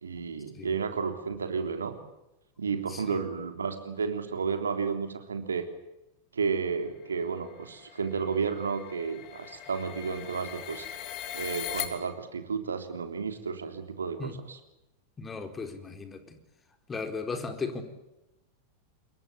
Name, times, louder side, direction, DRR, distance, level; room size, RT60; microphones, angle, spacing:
voice 1, 0.0-2.0 2.6-5.7 6.3-10.9 11.3-14.3, right 5 dB, 70° right, 7 dB, 3.3 m, -32 dB
voice 2, 2.9-3.2 14.2-14.4 15.2-16.4 16.9-17.8, left 4 dB, 15° left, 7 dB, 4.1 m, -36 dB
sound 1, 7.1-11.9, left 11 dB, 40° left, 3.3 m, -40 dB
28.0 x 22.5 x 8.7 m, 0.92 s
figure-of-eight pair, 90°, 0 cm